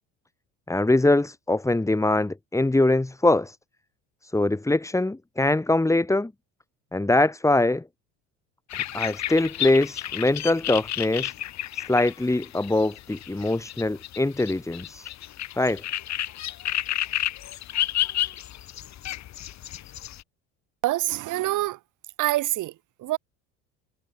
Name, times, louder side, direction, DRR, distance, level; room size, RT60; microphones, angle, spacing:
voice 1, 0.7-3.6 4.2-6.3 6.9-7.8 8.9-11.3 11.7-15.1 15.6-15.8, left 2 dB, 10° left, 3.0 m, -23 dB
sound 1, 8.7-20.2, left 12 dB, 55° left, 5.7 m, -31 dB
voice 2, 20.8-21.8 22.2-22.7 23.0-23.2, right 16 dB, 60° right, 5.9 m, -25 dB
supercardioid pair, 90°, 34 cm